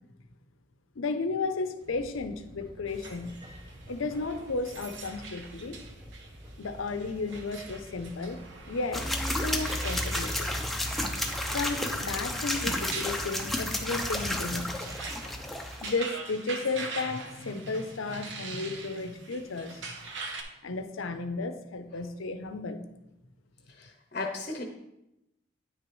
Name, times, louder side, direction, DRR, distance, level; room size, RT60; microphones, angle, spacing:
voice 1, 1.0-3.4 3.9-5.8 6.6-9.1 9.4-10.5 11.5-15.1 15.8-19.8 20.6-22.8, left 3 dB, 85° left, 8 dB, 0.6 m, -33 dB
sound 1, 1.8-13.6, equal, 20° right, 0.9 m, -50 dB
sound 2, 2.9-20.4, right 3 dB, 70° right, 0.9 m, -43 dB
sound 3, 8.9-15.9, left 1 dB, ahead, 0.5 m, -31 dB
voice 2, 23.7-24.6, left 3 dB, 40° left, 3 dB, 0.7 m, -36 dB
9.3 x 6.0 x 3.2 m, 0.89 s
head